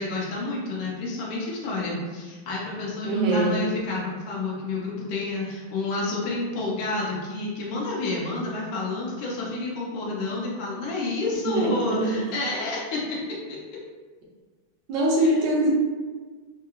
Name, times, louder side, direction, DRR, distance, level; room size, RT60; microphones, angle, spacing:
voice 1, 0.0-13.2 15.2-15.4, left 2 dB, 85° left, -4 dB, 1.7 m, -29 dB
voice 2, 3.0-3.5 11.4-12.2 14.9-15.7, right 1 dB, 65° right, -5 dB, 1.4 m, -23 dB
4.4 x 2.8 x 2.4 m, 1.4 s
omnidirectional pair, 2.3 m